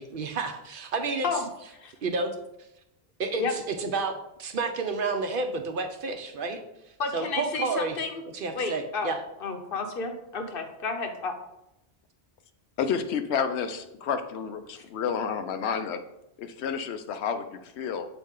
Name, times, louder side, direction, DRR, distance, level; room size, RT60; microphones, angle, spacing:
voice 1, 0.0-1.3 2.0-2.3 3.2-6.6 7.1-8.0 8.3-9.2, right 3 dB, 60° right, 6 dB, 0.7 m, -30 dB
voice 2, 7.0-8.2 8.5-9.1 9.4-11.3 14.7-14.8, left 4 dB, 60° left, 5 dB, 1.0 m, -31 dB
voice 3, 12.8-16.0 16.4-18.1, left 7 dB, 90° left, 9 dB, 0.9 m, -30 dB
7.0 x 4.2 x 3.7 m, 0.86 s
omnidirectional pair, 1.1 m